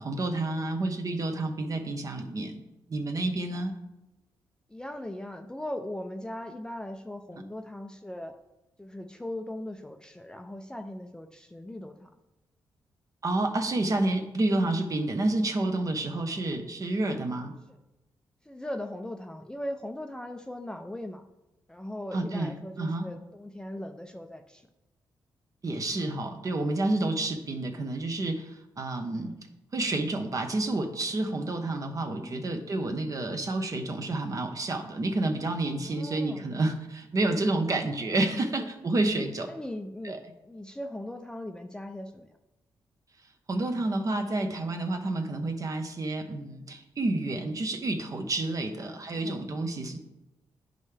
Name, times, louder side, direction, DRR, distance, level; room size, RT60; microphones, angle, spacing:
voice 1, 0.0-2.6 2.9-3.7 13.2-17.5 22.1-23.1 25.6-29.3 29.7-39.5 40.0-40.2 43.5-50.0, right 2 dB, 45° right, 5 dB, 1.0 m, -29 dB
voice 2, 4.7-8.3 8.8-12.1 18.5-21.2 21.7-24.7 25.9-26.0 29.2-29.4 32.0-32.5 35.8-36.5 38.6-38.7 39.5-42.3 48.8-49.4, left 1 dB, 10° left, 5 dB, 0.5 m, -39 dB
9.3 x 5.3 x 3.4 m, 0.98 s
cardioid pair, 80°, 8 cm